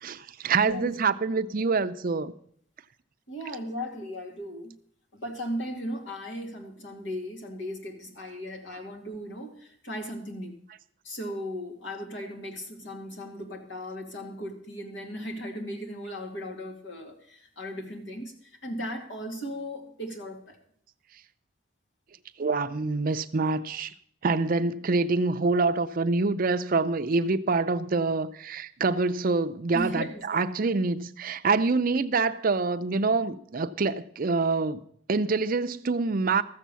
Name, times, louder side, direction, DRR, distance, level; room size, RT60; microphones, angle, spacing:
voice 1, 0.0-2.3 22.4-23.9 24.2-34.8 35.1-36.4, right 4 dB, 45° right, 0.5 m, -26 dB
voice 2, 0.6-1.0 3.3-4.8 5.1-10.6 11.0-20.6 29.7-30.2, equal, 70° left, 2.4 m, -37 dB
13.5 x 7.4 x 6.9 m
head